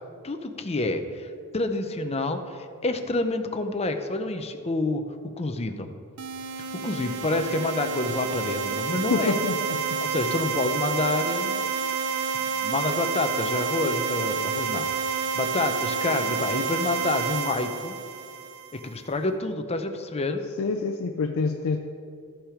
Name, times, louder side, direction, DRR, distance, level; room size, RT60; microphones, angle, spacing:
voice 1, 0.2-5.0 5.4-5.9 6.6-9.4 10.0-11.6 12.2-18.0 18.7-20.4, left 2 dB, 30° left, 7 dB, 0.7 m, -28 dB
sound 1, 6.2-18.9, right 6 dB, 80° right, 0.6 m, -29 dB
voice 2, 9.1-10.0 20.6-21.8, left 4 dB, 65° left, 5 dB, 0.5 m, -27 dB
13.0 x 6.1 x 4.9 m, 2.3 s
head